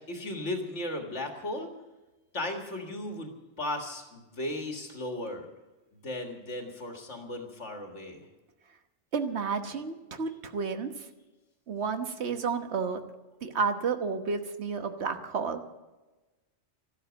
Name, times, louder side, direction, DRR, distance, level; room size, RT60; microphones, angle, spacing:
voice 1, 0.1-1.7 2.3-3.3 3.6-5.5 6.0-8.2, left 1 dB, 75° left, 3 dB, 2.1 m, -36 dB
voice 2, 9.1-11.1 11.7-13.0 13.4-15.6, right 5 dB, 65° right, 7 dB, 1.4 m, -31 dB
13.5 x 12.5 x 8.0 m, 1.1 s
omnidirectional pair, 1.2 m